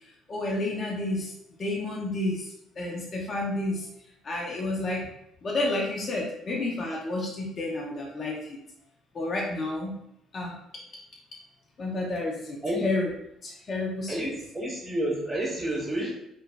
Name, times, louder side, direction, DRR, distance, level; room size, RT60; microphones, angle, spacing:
voice 1, 0.3-1.3 1.6-2.5 2.8-3.9 4.2-5.1 5.4-8.6 9.1-9.9 10.3-10.5 11.8-13.1 13.4-14.3, left 2 dB, 45° left, -2 dB, 0.6 m, -30 dB
voice 2, 14.1-16.1, right 1 dB, 15° right, -5 dB, 1.5 m, -30 dB
3.0 x 2.4 x 2.4 m, 0.78 s
hypercardioid pair, 60°, 0 cm